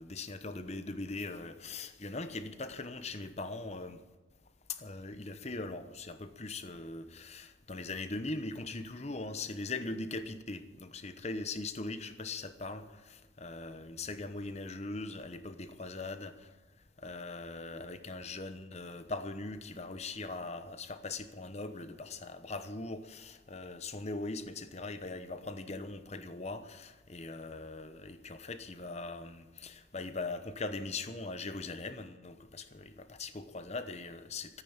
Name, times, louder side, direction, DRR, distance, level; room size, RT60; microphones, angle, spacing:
voice 1, 0.0-4.0 4.7-16.3 17.0-34.6, left 3 dB, 35° left, 0.9 m, -40 dB
14.0 x 9.3 x 8.8 m
head